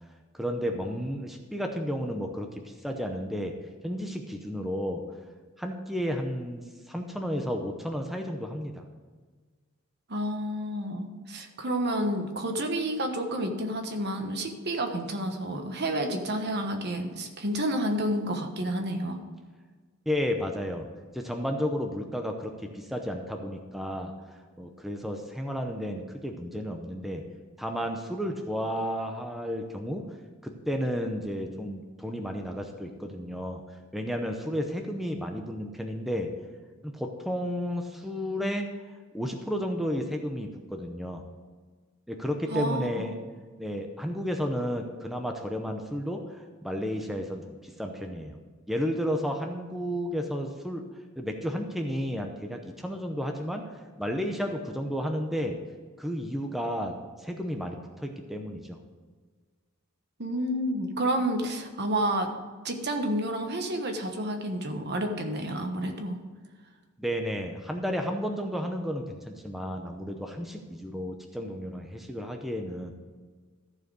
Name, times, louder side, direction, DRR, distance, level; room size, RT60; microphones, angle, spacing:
voice 1, 0.3-3.5 3.8-5.0 5.6-8.9 20.1-20.9 21.1-24.1 24.6-27.2 27.6-30.0 30.4-33.6 33.9-36.3 36.8-38.7 39.1-41.2 42.1-43.2 43.6-48.4 48.7-50.8 51.2-53.7 54.0-55.6 56.0-58.8 67.0-72.9, equal, ahead, 3 dB, 0.7 m, -32 dB
voice 2, 10.1-19.2 42.5-42.9 60.2-62.3 62.6-66.2, right 1 dB, 55° right, 5 dB, 1.3 m, -30 dB
14.0 x 4.8 x 6.3 m, 1.5 s
head